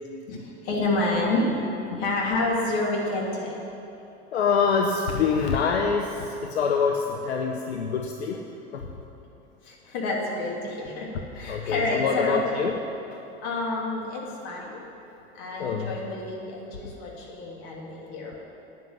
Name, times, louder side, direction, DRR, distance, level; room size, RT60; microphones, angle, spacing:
voice 1, 0.3-1.6 2.0-3.6 9.6-12.4 13.4-14.8 15.3-18.4, left 2 dB, 55° left, -2 dB, 3.0 m, -29 dB
voice 2, 4.3-8.4 8.7-8.8 11.5-12.7 15.6-15.9, left 5 dB, 80° left, 3 dB, 0.8 m, -25 dB
9.3 x 7.8 x 9.3 m, 2.9 s
hypercardioid pair, 85°, 32 cm